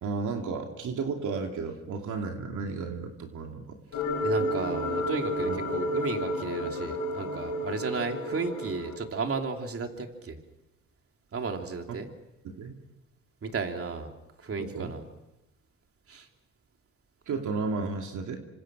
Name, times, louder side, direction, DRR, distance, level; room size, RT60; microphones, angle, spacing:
voice 1, 0.0-3.8 5.5-5.6 11.9-12.0 12.4-12.8 14.6-14.9 17.3-18.4, right 4 dB, 70° right, 3 dB, 2.8 m, -33 dB
sound 1, 3.9-9.0, left 1 dB, 75° left, 6.4 m, -31 dB
voice 2, 4.2-10.4 11.3-12.1 13.4-14.1 14.4-15.0 16.1-16.3, right 4 dB, 45° right, 4 dB, 3.2 m, -33 dB
27.0 x 26.0 x 6.3 m, 0.98 s
cardioid pair, 70°, 31 cm